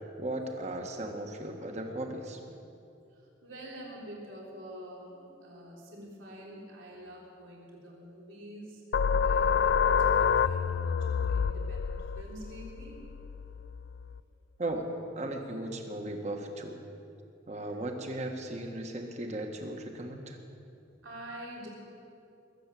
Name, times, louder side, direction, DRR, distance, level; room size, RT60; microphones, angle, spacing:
voice 1, 0.2-2.4 14.6-14.9 15.1-16.8 17.5-20.4, right 1 dB, 35° right, 3 dB, 1.4 m, -36 dB
voice 2, 3.1-13.0 17.7-17.8 21.0-21.7, right 1 dB, 85° right, -3 dB, 3.4 m, -47 dB
sound 1, 8.9-14.2, left 6 dB, 60° left, 0.3 m, -28 dB
21.5 x 8.1 x 7.6 m, 2.7 s
head